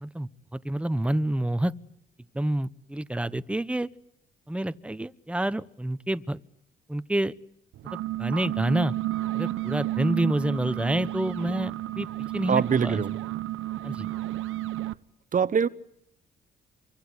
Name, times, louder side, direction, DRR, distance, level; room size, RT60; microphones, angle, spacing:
voice 1, 0.0-1.7 2.3-3.9 4.5-6.4 6.9-7.3 7.8-8.9 9.3-12.1 12.3-13.0 13.8-14.1, right 1 dB, 5° right, 1.1 m, -28 dB
sound 1, 7.7-15.0, right 15 dB, 85° right, 1.1 m, -32 dB
voice 2, 12.5-13.2 15.3-15.7, right 6 dB, 40° right, 1.2 m, -23 dB
26.5 x 24.5 x 8.2 m
cardioid pair, 90°, 20 cm